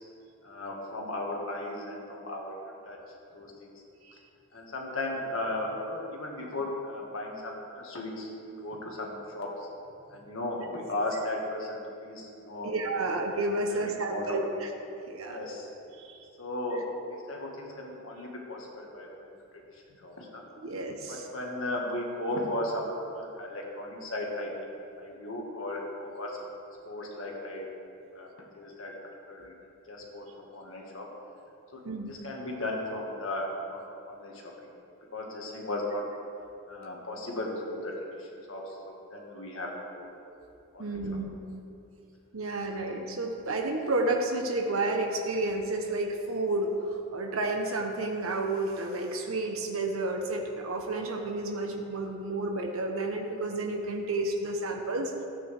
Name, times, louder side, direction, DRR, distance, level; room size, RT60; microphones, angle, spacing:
voice 1, 0.4-2.6 2.8-3.0 3.3-3.8 4.5-9.5 10.1-12.7 13.7-13.8 14.1-14.6 15.3-15.7 16.4-19.3 20.0-20.4 21.1-24.7 25.0-26.5 26.8-27.7 28.2-28.3 28.6-28.9 29.3-29.5 29.9-31.1 31.7-31.8 32.1-34.5 35.1-36.0 36.7-37.9 38.2-39.7 40.0-40.1 40.7-40.9, left 1 dB, 75° left, -1 dB, 1.8 m, -36 dB
voice 2, 12.6-14.7 15.1-15.4 16.0-16.2 20.6-21.3 31.8-32.2 40.8-41.4 42.3-55.1, right 2 dB, 90° right, 2 dB, 1.0 m, -31 dB
14.0 x 9.1 x 3.5 m, 2.7 s
head